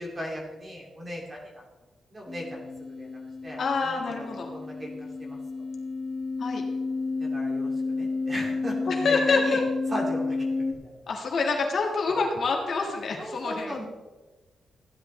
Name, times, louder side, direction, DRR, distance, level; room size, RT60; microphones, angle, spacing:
voice 1, 0.0-1.6 2.1-5.4 7.2-9.6 9.9-11.0 12.1-12.2 13.2-13.8, equal, 25° right, -2 dB, 2.5 m, -37 dB
sound 1, 2.3-10.7, left 3 dB, 15° left, 1.1 m, -31 dB
voice 2, 3.6-4.5 6.4-6.6 8.9-9.6 11.1-13.8, left 4 dB, 50° left, 0 dB, 1.7 m, -27 dB
15.5 x 10.5 x 3.3 m, 1.2 s
wide cardioid pair, 175°, 0 cm